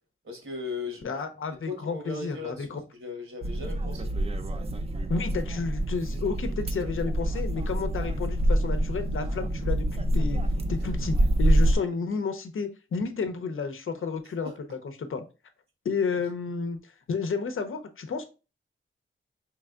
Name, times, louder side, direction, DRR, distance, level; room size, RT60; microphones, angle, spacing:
voice 1, 0.2-1.2 1.6-4.1 10.8-10.9 14.2-14.6 16.1-16.2, left 4 dB, 70° right, 1.4 m, -38 dB
voice 2, 1.0-2.8 5.1-10.4 10.7-14.5 15.0-15.2 15.8-18.2, left 5 dB, 75° left, 0.7 m, -31 dB
sound 1, 3.4-11.8, right 1 dB, 30° right, 0.4 m, -26 dB
4.4 x 3.2 x 2.4 m
wide cardioid pair, 135°, 21 cm